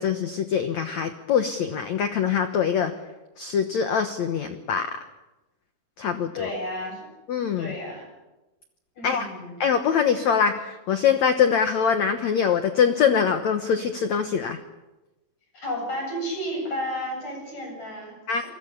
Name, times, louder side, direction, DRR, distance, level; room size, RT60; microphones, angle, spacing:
voice 1, 0.0-2.9 3.4-4.9 6.0-6.5 7.3-7.7 9.0-9.3 9.6-14.6 18.3-18.4, left 7 dB, 85° left, 8 dB, 1.6 m, -23 dB
voice 2, 6.3-7.1 7.6-8.1 9.0-9.6 15.5-18.2, equal, 40° left, 2 dB, 9.2 m, -32 dB
28.0 x 22.0 x 6.9 m, 1.1 s
omnidirectional pair, 5.1 m